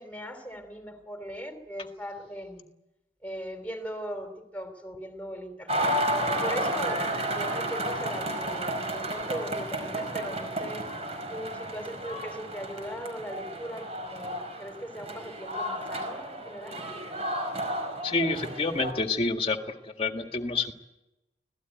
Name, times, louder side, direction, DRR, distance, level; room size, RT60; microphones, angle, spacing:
voice 1, 0.0-2.7 3.2-6.0 6.3-10.9 11.3-16.8, equal, 10° left, 7 dB, 3.1 m, -39 dB
sound 1, 5.7-18.9, right 1 dB, 35° right, 4.8 m, -32 dB
voice 2, 18.0-19.6 19.8-20.7, left 3 dB, 30° left, 5 dB, 1.8 m, -28 dB
25.5 x 17.0 x 9.2 m, 0.96 s
head